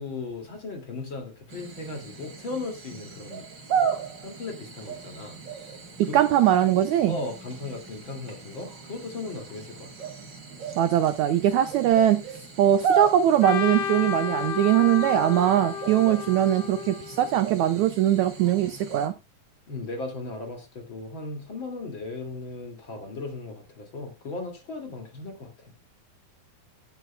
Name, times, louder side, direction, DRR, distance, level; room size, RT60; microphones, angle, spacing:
voice 1, 0.0-3.5 3.8-4.0 4.2-5.4 6.1-6.5 7.1-10.1 19.7-25.7, left 3 dB, 35° left, 2.6 m, -37 dB
sound 1, 1.5-19.1, right 7 dB, 35° right, 2.2 m, -35 dB
voice 2, 6.0-7.2 10.8-12.2 12.6-19.1, right 11 dB, 80° right, 1.7 m, -21 dB
Trumpet, 13.4-17.6, left 9 dB, 65° left, 3.0 m, -32 dB
16.5 x 9.2 x 2.2 m
omnidirectional pair, 4.2 m